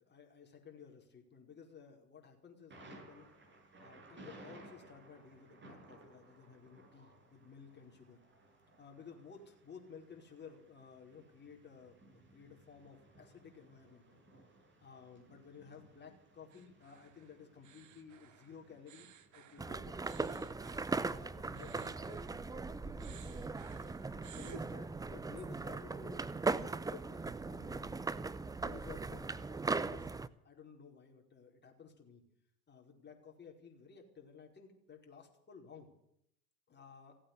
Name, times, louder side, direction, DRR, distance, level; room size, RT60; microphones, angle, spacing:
voice 1, 0.0-3.3 3.8-8.2 8.8-14.1 14.8-20.5 21.1-23.5 24.1-28.0 28.5-32.2 32.7-35.9 36.7-37.2, left 6 dB, 25° left, 1 dB, 4.9 m, -55 dB
Thunder, 2.7-20.2, right 2 dB, 25° right, 5.9 m, -60 dB
sound 1, 16.5-22.7 23.0-24.6, right 9 dB, 40° right, 1.7 m, -58 dB
sound 2, 19.6-30.3, right 3 dB, 10° right, 0.6 m, -39 dB
16.5 x 8.8 x 9.9 m, 0.73 s
hypercardioid pair, 85°, 43 cm